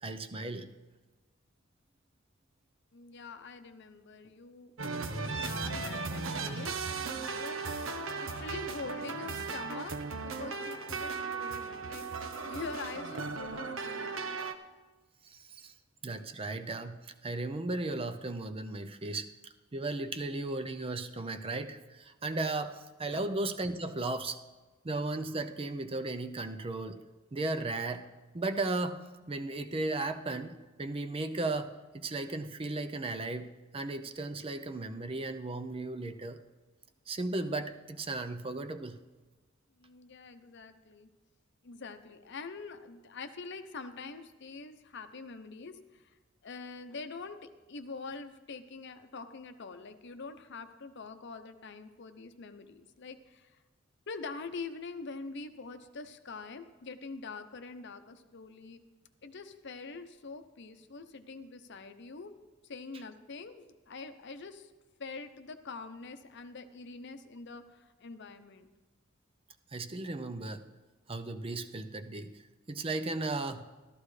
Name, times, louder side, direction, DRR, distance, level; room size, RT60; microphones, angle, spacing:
voice 1, 0.0-0.7 15.2-15.7 16.0-19.3 19.7-24.4 24.8-27.0 27.3-28.1 28.3-36.4 37.1-39.0 69.7-70.6 71.1-72.4 72.7-73.7, right 2 dB, 30° right, 8 dB, 0.5 m, -35 dB
voice 2, 2.9-7.7 8.2-12.1 12.4-14.4 23.1-23.2 39.8-41.1 41.6-46.2 46.4-53.5 54.1-58.8 59.2-62.3 62.6-64.7 65.0-68.7, left 4 dB, 60° left, 9 dB, 0.7 m, -45 dB
sound 1, 4.8-14.5, right 4 dB, 75° right, 0.8 m, -37 dB
14.0 x 13.0 x 3.2 m, 1.2 s
head